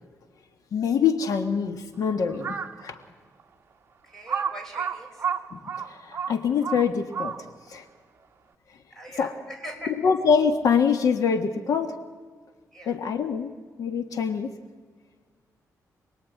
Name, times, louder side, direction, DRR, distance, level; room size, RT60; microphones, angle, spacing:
voice 1, 0.7-3.0 5.5-7.3 7.7-7.8 9.2-9.4 9.9-12.0 12.8-14.5, left 6 dB, 70° left, 7 dB, 1.5 m, -25 dB
Crow, 2.3-2.8 3.4-3.5 4.3-7.7, right 7 dB, 35° right, 1.3 m, -31 dB
voice 2, 4.0-5.2 8.9-9.9 12.7-12.9, equal, 5° left, 2 dB, 5.1 m, -41 dB
27.5 x 21.0 x 9.3 m, 1.5 s
wide cardioid pair, 165°, 6 cm